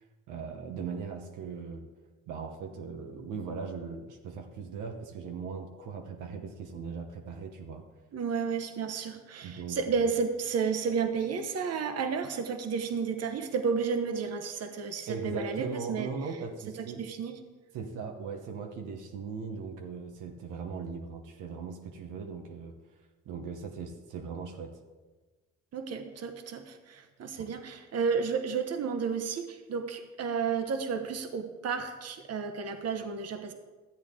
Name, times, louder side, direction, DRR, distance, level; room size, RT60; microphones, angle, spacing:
voice 1, 0.3-1.8 2.3-7.8 9.4-9.8 15.1-17.1 17.7-22.8 23.2-24.8 27.4-27.5, right 5 dB, 90° right, 4 dB, 1.0 m, -39 dB
voice 2, 8.1-16.1 16.8-17.3 25.7-33.5, right 5 dB, 55° right, 7 dB, 1.0 m, -32 dB
13.0 x 8.3 x 3.7 m, 1.3 s
cardioid pair, 90°, 30 cm